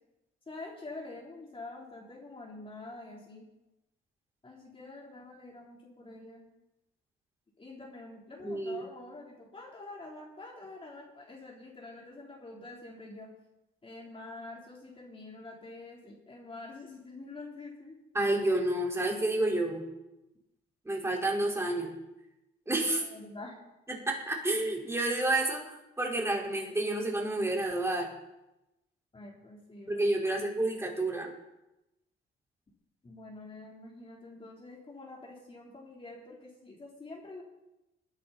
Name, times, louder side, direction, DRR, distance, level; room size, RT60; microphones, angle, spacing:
voice 1, 0.5-3.5 4.4-6.5 7.6-13.3 13.8-18.0 23.0-23.6 29.1-30.1 33.0-37.4, left 2 dB, 25° left, -3 dB, 3.8 m, -46 dB
voice 2, 8.4-8.8 18.1-19.9 20.8-21.9 22.7-23.0 24.1-28.1 29.9-31.3, right 2 dB, 15° right, -1 dB, 4.7 m, -30 dB
21.0 x 10.5 x 4.3 m, 0.95 s
cardioid pair, 90°, 20 cm